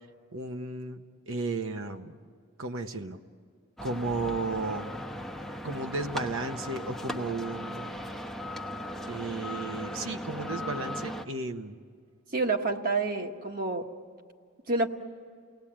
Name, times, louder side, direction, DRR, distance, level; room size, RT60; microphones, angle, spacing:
voice 1, 0.3-1.0 1.3-2.2 2.6-3.2 3.8-4.9 5.6-7.9 9.1-11.8, right 3 dB, 65° right, 6 dB, 1.0 m, -34 dB
sound 1, 3.8-11.3, left 1 dB, ahead, 0.9 m, -37 dB
voice 2, 12.3-13.9 14.7-14.9, right 3 dB, 40° right, 4 dB, 1.4 m, -28 dB
29.0 x 19.0 x 8.8 m, 2.2 s
head